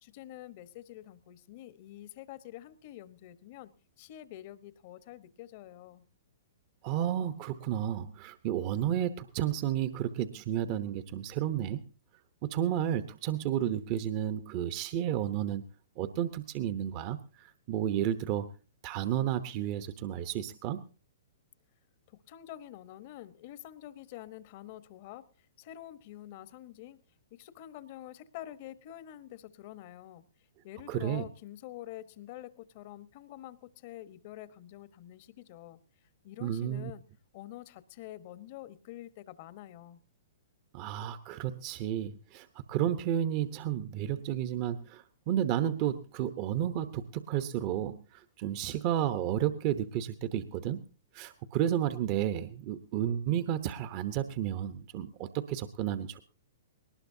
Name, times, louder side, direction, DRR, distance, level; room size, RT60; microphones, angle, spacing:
voice 1, 0.0-3.7 4.0-6.0 22.1-25.3 25.6-27.0 27.3-30.2 30.6-35.8 36.2-37.0 37.3-40.0, left 13 dB, 45° left, 14 dB, 1.1 m, -47 dB
voice 2, 6.8-11.8 12.4-15.6 16.0-18.5 18.8-20.8 30.9-31.3 36.4-36.9 40.7-50.8 51.1-56.2, right 11 dB, 40° right, 11 dB, 0.9 m, -32 dB
20.0 x 19.0 x 2.7 m, 0.37 s
hypercardioid pair, 120°, 0 cm